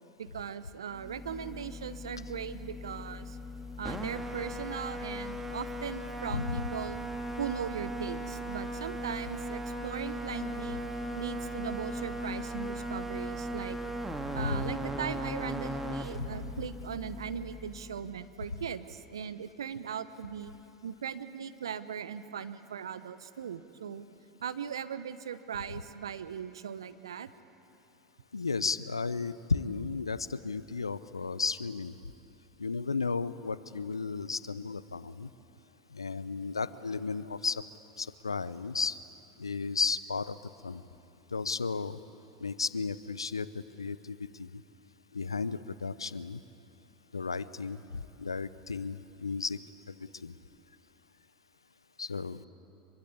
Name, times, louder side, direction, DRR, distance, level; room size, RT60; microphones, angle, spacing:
voice 1, 0.2-3.4 3.8-7.0 7.4-10.8 11.2-13.8 14.3-20.5 20.8-24.1 24.4-27.3, right 8 dB, 75° right, 12 dB, 1.0 m, -39 dB
sound 1, 0.9-18.2, equal, 10° right, 2.2 m, -38 dB
voice 2, 6.3-6.6 14.4-14.6 16.2-16.3 28.3-32.0 32.6-35.3 35.9-37.6 38.0-39.0 39.4-40.4 40.6-40.8 41.3-42.0 42.4-44.6 45.1-46.4 47.1-49.6 49.9-50.0 50.2-50.3 52.0-52.5, left 4 dB, 85° left, 16 dB, 0.7 m, -34 dB
25.0 x 23.0 x 8.5 m, 2.8 s
figure-of-eight pair, 80°, 3 cm